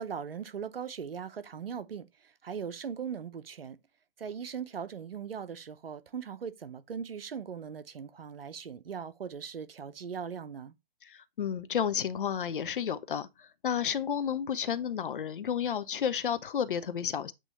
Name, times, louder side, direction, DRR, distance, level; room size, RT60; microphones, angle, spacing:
voice 1, 0.0-3.8 4.2-10.7, right 7 dB, 75° right, 0.8 m, -39 dB
voice 2, 11.0-17.3, left 8 dB, 60° left, 0.7 m, -31 dB
8.2 x 3.0 x 4.0 m
figure-of-eight pair, 130°, 29 cm